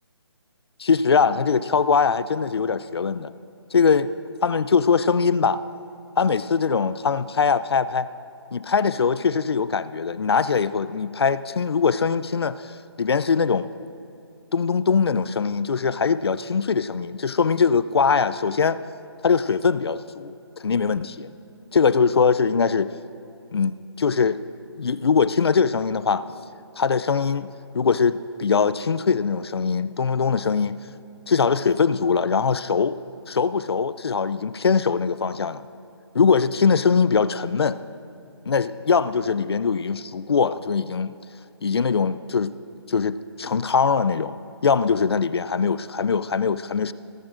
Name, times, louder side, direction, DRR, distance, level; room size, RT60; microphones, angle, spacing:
voice 1, 0.8-3.3 3.7-4.1 4.4-5.6 6.2-8.1 8.5-12.6 13.0-13.7 14.5-18.8 19.2-20.3 20.6-21.3 21.7-22.9 23.5-24.4 24.8-26.2 26.8-27.5 27.7-30.8 31.3-33.0 33.3-35.7 36.1-37.8 38.5-41.1 41.6-42.5 42.9-46.9, left 5 dB, 65° left, 15 dB, 0.4 m, -21 dB
17.5 x 13.5 x 2.5 m, 2.6 s
hypercardioid pair, 175°, 14 cm